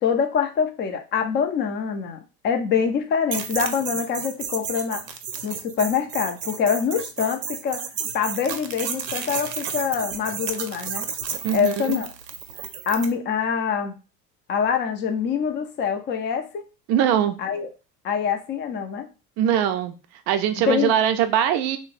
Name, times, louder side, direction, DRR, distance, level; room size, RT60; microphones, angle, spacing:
voice 1, 0.0-5.0 5.4-7.9 8.1-11.1 11.5-12.1 12.9-13.9 14.5-16.6 17.4-17.7 18.0-19.1 20.6-20.9, left 7 dB, 25° left, 6 dB, 0.5 m, -25 dB
sound 1, 3.3-13.1, right 7 dB, 85° right, 0.6 m, -32 dB
voice 2, 11.4-12.0 16.9-17.4 19.4-19.9 20.3-21.8, right 10 dB, 35° right, 9 dB, 0.4 m, -21 dB
3.1 x 2.1 x 3.8 m, 0.31 s
figure-of-eight pair, 70°, 49 cm